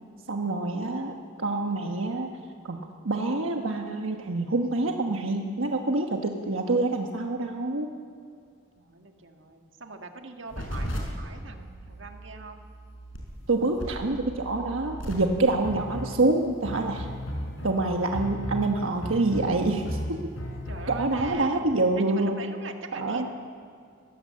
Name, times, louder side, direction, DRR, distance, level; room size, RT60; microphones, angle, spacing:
voice 1, 0.3-2.3 2.6-2.8 3.0-7.9 13.5-17.1 17.6-20.2 21.0-22.4 23.0-23.3, right 2 dB, 85° right, 3 dB, 1.2 m, -26 dB
voice 2, 8.8-12.6 20.7-21.6 22.0-23.3, right 3 dB, 65° right, 4 dB, 1.7 m, -42 dB
sound 1, 10.5-21.2, equal, 75° left, 4.9 m, -36 dB
20.5 x 17.0 x 7.7 m, 2.3 s
head